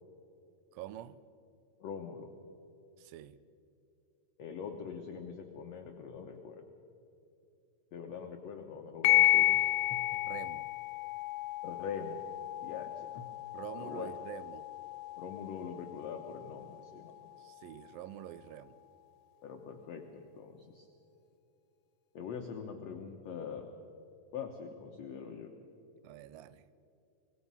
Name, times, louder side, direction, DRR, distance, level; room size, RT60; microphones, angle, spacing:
voice 1, 0.7-1.2 3.0-3.4 10.3-10.7 13.5-14.7 17.4-18.8 26.0-26.7, right 11 dB, 75° right, 15 dB, 2.2 m, -46 dB
voice 2, 1.8-2.3 4.4-6.7 7.9-9.6 9.9-10.2 11.6-12.2 12.6-13.3 13.8-14.1 15.2-17.3 19.4-20.9 22.1-23.7 24.3-25.5, left 6 dB, 70° left, 3 dB, 1.6 m, -43 dB
sound 1, 9.0-18.0, left 15 dB, 90° left, 2.7 m, -33 dB
24.0 x 19.5 x 5.5 m, 2.8 s
omnidirectional pair, 4.4 m